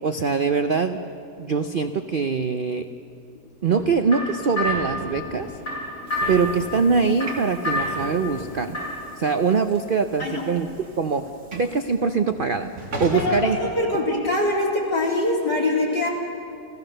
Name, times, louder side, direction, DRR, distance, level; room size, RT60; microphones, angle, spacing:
voice 1, 0.0-1.0 1.4-2.9 3.6-5.5 6.3-8.8 9.2-10.7 11.0-12.7 13.0-13.6, right 5 dB, 70° right, 8 dB, 0.5 m, -23 dB
sound 1, 3.7-9.1, left 1 dB, 60° left, 7.5 m, -30 dB
Train / Sliding door, 5.2-14.5, right 1 dB, 50° right, 2.8 m, -40 dB
voice 2, 13.1-16.1, left 2 dB, 80° left, -2 dB, 4.2 m, -23 dB
30.0 x 16.0 x 6.6 m, 2.9 s
omnidirectional pair, 1.9 m